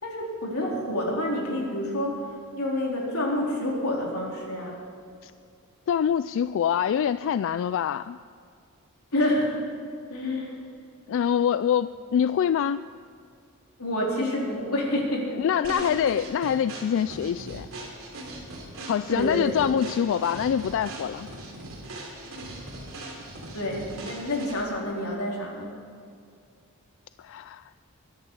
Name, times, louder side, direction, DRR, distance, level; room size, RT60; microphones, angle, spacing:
voice 1, 0.0-4.8 9.1-9.7 10.1-10.6 13.8-15.3 19.1-19.5 23.5-25.8, left 1 dB, 90° left, -2 dB, 3.8 m, -28 dB
voice 2, 5.9-8.2 11.1-12.8 15.4-17.7 18.9-21.3 27.2-27.6, left 8 dB, 60° left, 14 dB, 0.3 m, -25 dB
sound 1, 15.6-24.8, right 1 dB, 70° right, 3.2 m, -40 dB
23.5 x 10.5 x 4.7 m, 2.3 s
head